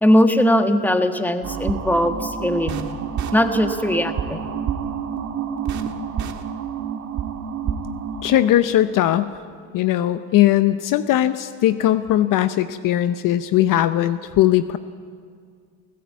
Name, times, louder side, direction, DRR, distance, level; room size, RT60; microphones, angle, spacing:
voice 1, 0.0-2.8 3.3-4.4, left 1 dB, 5° left, 7 dB, 1.5 m, -19 dB
sound 1, 1.4-8.5, right 7 dB, 45° right, 1.8 m, -28 dB
voice 2, 8.2-9.3 9.7-14.8, left 13 dB, 50° left, 12 dB, 0.8 m, -19 dB
28.5 x 15.0 x 8.4 m, 2.1 s
supercardioid pair, 115°, 41 cm